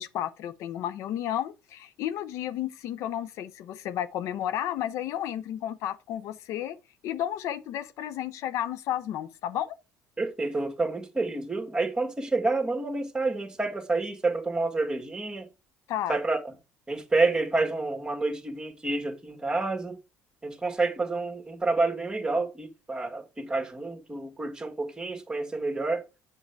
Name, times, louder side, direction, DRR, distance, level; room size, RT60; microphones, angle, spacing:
voice 1, 0.0-6.8 7.0-9.8 15.9-16.2, left 11 dB, 70° left, 0.6 m, -32 dB
voice 2, 10.2-15.5 16.1-16.4 16.9-20.0 20.4-26.0, right 3 dB, 15° right, 1.6 m, -28 dB
7.2 x 6.7 x 3.3 m
supercardioid pair, 80°, 5 cm